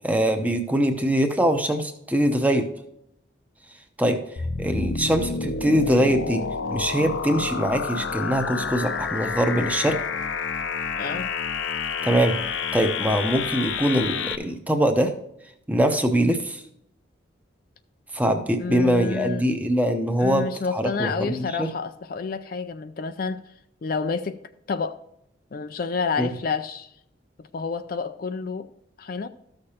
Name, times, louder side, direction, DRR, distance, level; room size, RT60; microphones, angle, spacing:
voice 1, 0.0-2.7 4.0-4.2 4.6-6.4 6.7-10.0 12.0-15.1 15.7-16.6 18.1-21.7 26.2-26.3, equal, 10° right, 0.7 m, -23 dB
sound 1, 4.4-14.4, left 5 dB, 75° left, 0.7 m, -29 dB
voice 2, 11.0-11.3 18.6-19.4 20.2-23.4 23.8-24.4 24.7-25.0 25.5-26.9 27.5-28.7 29.0-29.3, left 4 dB, 45° left, 0.4 m, -29 dB
13.5 x 6.6 x 2.9 m
head